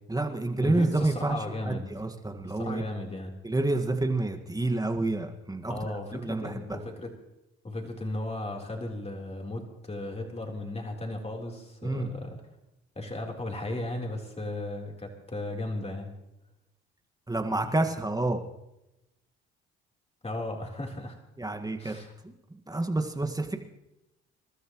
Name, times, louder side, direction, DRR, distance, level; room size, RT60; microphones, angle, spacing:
voice 1, 0.1-1.4 1.6-2.8 3.4-5.7 6.1-6.8 11.8-12.1 17.3-18.4 21.4-22.0 22.2-22.3 22.7-23.6, right 2 dB, 10° right, 5 dB, 1.8 m, -28 dB
voice 2, 0.6-1.9 2.4-3.4 5.7-7.1 7.6-12.4 13.0-16.1 20.2-21.2 21.8-22.1, left 1 dB, 20° left, 1 dB, 3.9 m, -35 dB
27.5 x 13.0 x 3.1 m, 0.91 s
hypercardioid pair, 60°, 29 cm